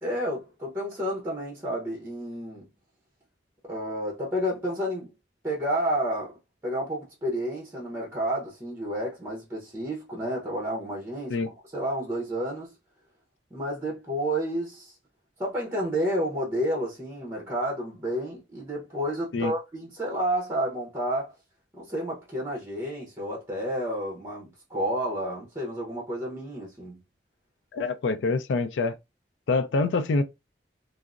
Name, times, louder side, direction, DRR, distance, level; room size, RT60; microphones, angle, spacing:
voice 1, 0.0-2.7 3.7-5.1 5.4-6.3 6.6-12.7 13.5-14.9 15.4-21.3 21.7-27.0, equal, 15° right, 0.7 m, -30 dB
voice 2, 27.7-29.0 29.5-30.2, left 3 dB, 85° left, 0.4 m, -25 dB
3.5 x 2.0 x 2.4 m
head